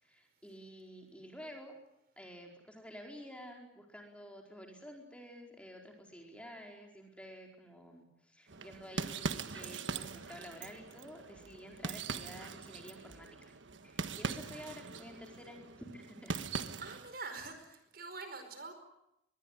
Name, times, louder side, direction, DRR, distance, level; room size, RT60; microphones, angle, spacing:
voice 1, 0.0-1.8 2.2-13.3 13.8-16.3, equal, 5° left, 1 dB, 4.4 m, -51 dB
sound 1, 8.5-17.1, right 4 dB, 80° right, 1.4 m, -42 dB
voice 2, 16.8-18.7, right 4 dB, 50° right, 7 dB, 4.9 m, -45 dB
23.5 x 21.5 x 9.9 m, 0.84 s
head